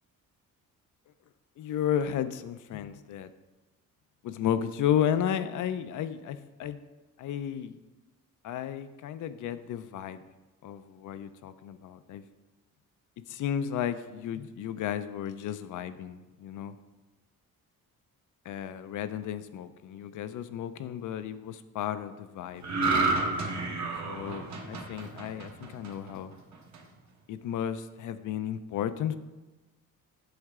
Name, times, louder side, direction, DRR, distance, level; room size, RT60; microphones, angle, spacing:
voice 1, 1.6-3.3 4.2-6.8 7.2-7.8 8.4-10.2 10.6-12.2 13.3-16.8 18.5-22.7 24.0-26.3 27.3-29.2, left 9 dB, 65° left, 12 dB, 0.5 m, -33 dB
sound 1, 22.6-26.1 26.5-26.8, right 3 dB, 55° right, 1.2 m, -30 dB
7.9 x 6.4 x 3.6 m, 1.2 s
cardioid pair, 120°, 33 cm